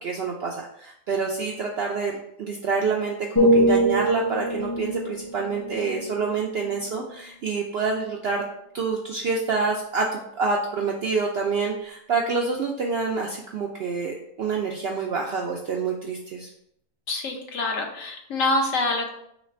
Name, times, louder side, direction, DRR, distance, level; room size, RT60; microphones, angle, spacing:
voice 1, 0.0-2.1 2.4-8.4 8.7-16.5, right 4 dB, 70° right, -1 dB, 0.6 m, -27 dB
sound 1, 3.4-7.3 7.8-8.0, right 1 dB, 25° left, 0.5 m, -24 dB
voice 2, 17.1-19.1, left 2 dB, 65° left, 2 dB, 1.0 m, -26 dB
3.2 x 3.2 x 4.1 m, 0.74 s
omnidirectional pair, 1.5 m